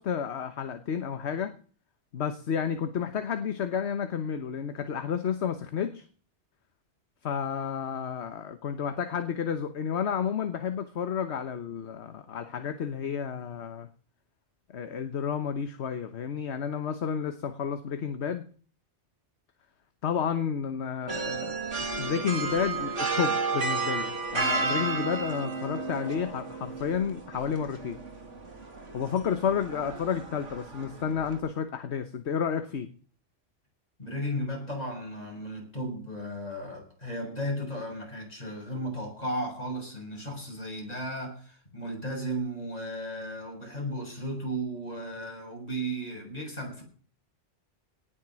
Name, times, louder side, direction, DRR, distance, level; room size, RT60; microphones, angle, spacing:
voice 1, 0.0-1.5 2.1-6.0 7.2-13.9 14.7-18.4 20.0-28.0 28.9-32.9, left 7 dB, 65° left, 1.3 m, -31 dB
sound 1, 21.1-31.4, right 3 dB, 85° right, 2.7 m, -33 dB
voice 2, 34.0-46.8, equal, 35° left, 6.9 m, -35 dB
18.5 x 7.5 x 6.3 m
omnidirectional pair, 1.2 m